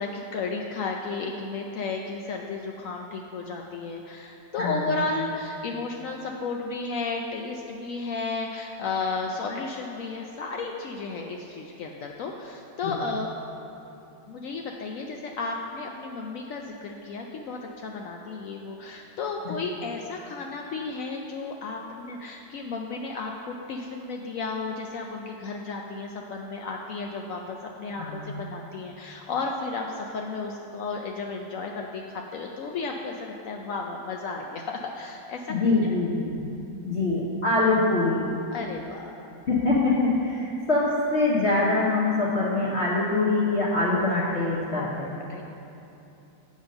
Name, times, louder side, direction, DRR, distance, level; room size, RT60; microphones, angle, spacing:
voice 1, 0.0-13.3 14.3-35.4 35.8-35.9 36.5-36.9 38.5-39.2 43.9-44.0 44.7-45.4, left 4 dB, 90° left, 1 dB, 0.7 m, -33 dB
voice 2, 4.6-5.1 12.8-13.0 19.4-19.6 27.9-28.3 35.5-36.4 36.8-38.2 39.5-45.1, left 2 dB, 45° left, -7 dB, 1.0 m, -24 dB
8.0 x 5.2 x 6.4 m, 2.9 s
omnidirectional pair, 2.0 m